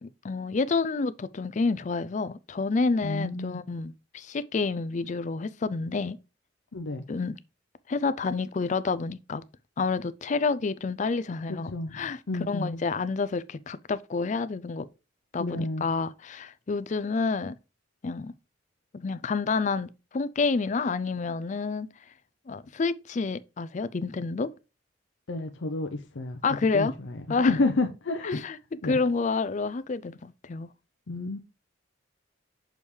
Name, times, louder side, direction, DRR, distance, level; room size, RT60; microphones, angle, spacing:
voice 1, 0.0-6.2 7.1-7.4 7.9-9.4 9.8-12.2 12.5-14.9 15.3-17.6 18.0-18.3 18.9-21.9 22.5-24.5 26.4-27.0 27.3-27.6 28.3-28.6 28.8-30.7, left 4 dB, 40° left, 0.4 m, -29 dB
voice 2, 3.0-3.6 6.7-7.0 11.5-12.8 15.4-15.9 25.3-26.4 26.7-28.4 28.8-29.0 31.1-31.4, left 2 dB, 75° left, 0.7 m, -30 dB
6.3 x 5.4 x 3.2 m
head